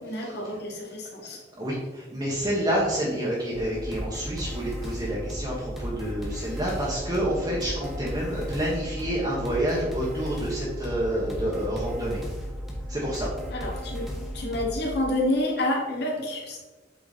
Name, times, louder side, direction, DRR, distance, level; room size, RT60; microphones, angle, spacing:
voice 1, 0.0-1.4 13.5-14.1 14.3-16.6, left 1 dB, 60° left, -2 dB, 1.9 m, -28 dB
voice 2, 1.5-12.2 12.9-13.3, right 1 dB, 25° right, -6 dB, 1.4 m, -28 dB
sound 1, 3.5-14.9, equal, ahead, 1.4 m, -35 dB
8.4 x 4.5 x 4.2 m, 1.3 s
head